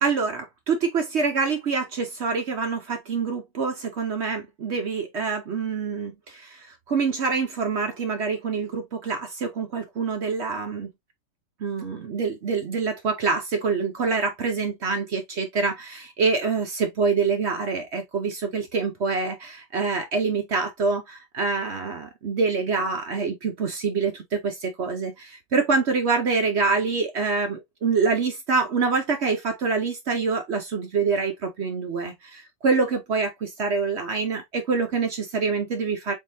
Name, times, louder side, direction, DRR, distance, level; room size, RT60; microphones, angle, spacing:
voice 1, 0.0-10.9 11.6-36.1, right 4 dB, 60° right, 0.7 m, -26 dB
3.7 x 3.6 x 2.6 m
omnidirectional pair, 1.9 m